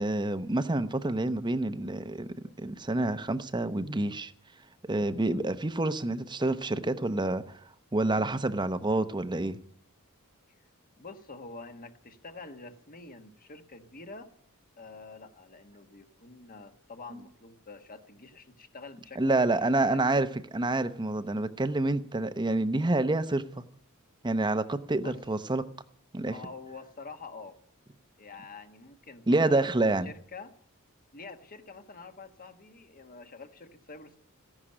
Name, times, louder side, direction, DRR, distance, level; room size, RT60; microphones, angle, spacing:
voice 1, 0.0-4.3 4.9-7.6 7.9-9.6 19.2-20.3 20.5-23.6 24.2-25.7 26.1-26.3 29.3-30.1, right 2 dB, 20° right, 0.8 m, -28 dB
voice 2, 11.0-14.3 14.8-19.5 19.9-20.3 25.0-25.2 26.3-27.6 28.2-29.7 30.0-30.6 31.1-34.2, left 3 dB, 40° left, 1.4 m, -46 dB
14.5 x 11.0 x 8.7 m
head